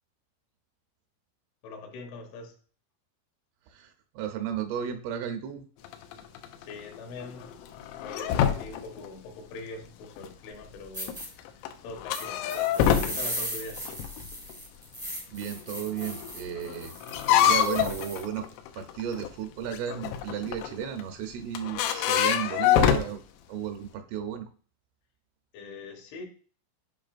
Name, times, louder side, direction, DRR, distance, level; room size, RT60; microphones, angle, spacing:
voice 1, 1.6-2.6 6.6-7.5 8.0-11.1 11.6-13.8 25.5-26.3, left 3 dB, 75° left, 2 dB, 3.4 m, -43 dB
voice 2, 3.7-5.6 15.3-16.9 17.3-18.5 18.8-23.2 23.5-24.5, right 9 dB, 80° right, 6 dB, 3.3 m, -34 dB
sound 1, 5.9-9.1 9.5-9.6 10.2-10.3 11.1-13.3 13.8-14.5 15.4-15.5 15.7-19.3 19.7-21.0 21.4-23.1, left 10 dB, 90° left, 3.4 m, -26 dB
sound 2, 10.5-10.6 10.9-11.3 12.1-18.2, right 1 dB, 5° left, 0.4 m, -38 dB
10.5 x 4.9 x 2.5 m, 0.41 s
omnidirectional pair, 5.8 m